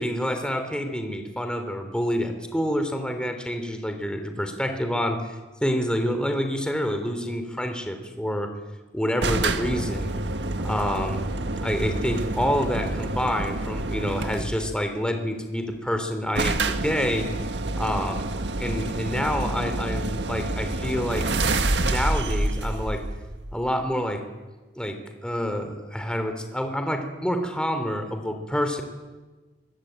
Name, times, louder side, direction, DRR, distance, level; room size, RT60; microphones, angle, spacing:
voice 1, 0.0-5.2 5.6-8.5 8.9-10.1 10.6-11.2 11.6-17.3 17.7-18.3 18.6-21.3 21.8-23.0 23.5-24.2 24.8-25.0 25.2-28.8, equal, 5° left, 6 dB, 3.4 m, -27 dB
sound 1, 9.2-14.7 15.7-15.8 16.0-16.1 16.4-23.8, right 2 dB, 85° right, 1.7 m, -28 dB
26.5 x 23.5 x 9.1 m, 1.3 s
head